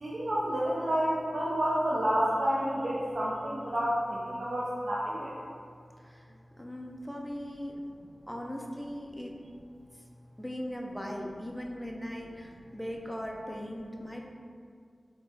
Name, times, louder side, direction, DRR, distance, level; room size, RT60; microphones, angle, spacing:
voice 1, 0.0-5.3, equal, 75° right, -6 dB, 0.5 m, -29 dB
voice 2, 6.6-7.8 8.3-9.4 10.4-14.3, equal, ahead, 0 dB, 0.5 m, -39 dB
3.5 x 3.0 x 4.1 m, 2.3 s
wide cardioid pair, 60°, 0 cm